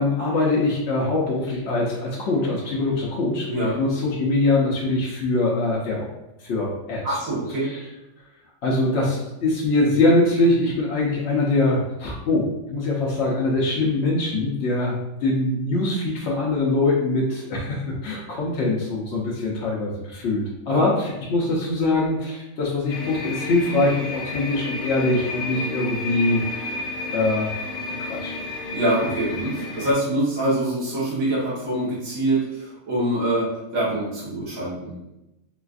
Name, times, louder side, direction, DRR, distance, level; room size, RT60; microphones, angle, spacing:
voice 1, 0.0-6.1 6.4-7.2 7.6-7.9 8.6-26.8 27.1-27.5 28.0-28.3, left 2 dB, 60° left, -5 dB, 0.8 m, -23 dB
voice 2, 7.0-7.7 20.7-20.8 28.7-35.0, right 1 dB, 80° right, -8 dB, 1.5 m, -25 dB
sound 1, 22.9-29.9, left 3 dB, 85° left, 1.1 m, -31 dB
4.0 x 2.3 x 2.4 m, 0.93 s
omnidirectional pair, 1.5 m